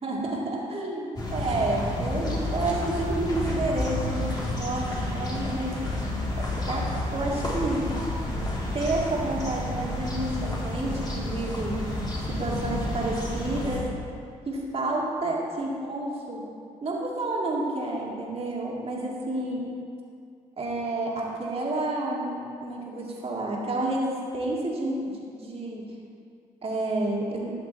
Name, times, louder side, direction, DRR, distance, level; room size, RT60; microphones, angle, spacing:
voice 1, 0.0-5.7 6.4-7.9 8.7-11.8 12.3-13.8 14.5-16.5 16.8-19.6 20.6-25.8 26.6-27.5, right 2 dB, 45° right, -3 dB, 2.1 m, -30 dB
sound 1, 1.2-13.8, left 1 dB, 30° left, 2.6 m, -30 dB
12.0 x 6.9 x 4.1 m, 2.3 s
supercardioid pair, 60°, 14 cm